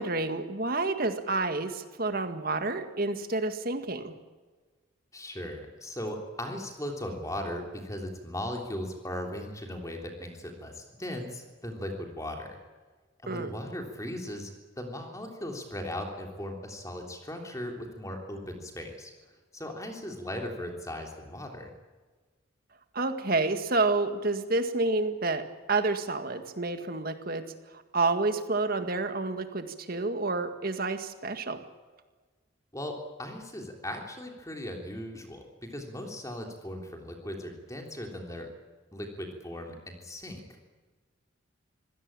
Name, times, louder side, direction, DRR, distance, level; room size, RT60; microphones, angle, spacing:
voice 1, 0.0-4.1 13.3-13.5 22.9-27.4 27.9-31.6, right 3 dB, 45° right, 8 dB, 1.8 m, -29 dB
voice 2, 5.1-12.5 13.2-19.1 19.5-21.7 32.7-38.5 38.9-40.6, left 1 dB, 15° left, 3 dB, 3.3 m, -38 dB
25.0 x 17.0 x 8.9 m, 1.4 s
head